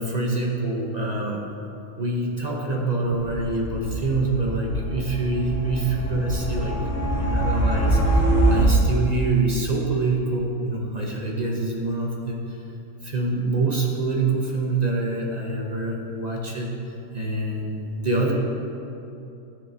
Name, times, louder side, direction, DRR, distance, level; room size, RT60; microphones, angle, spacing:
voice 1, 0.0-1.4 2.0-6.8 7.2-12.6 13.0-16.7 17.1-18.3, right 2 dB, 35° right, -1 dB, 0.7 m, -25 dB
sound 1, 3.1-8.6, right 1 dB, 50° left, 1.3 m, -24 dB
13.5 x 6.5 x 2.7 m, 2.8 s
omnidirectional pair, 1.6 m